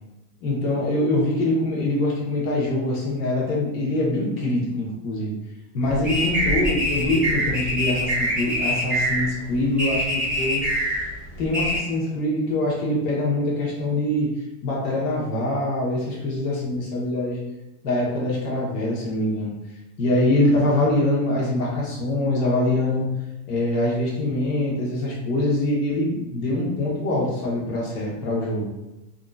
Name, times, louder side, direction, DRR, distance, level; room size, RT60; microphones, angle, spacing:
voice 1, 0.4-5.3 5.7-10.9 11.4-14.3 14.6-17.4 17.8-19.5 20.0-23.1 23.5-28.7, left 1 dB, 65° left, -4 dB, 1.0 m, -24 dB
sound 1, 5.8-11.8, equal, 5° right, 0.4 m, -25 dB
2.7 x 2.4 x 2.3 m, 0.99 s
supercardioid pair, 145°, 48 cm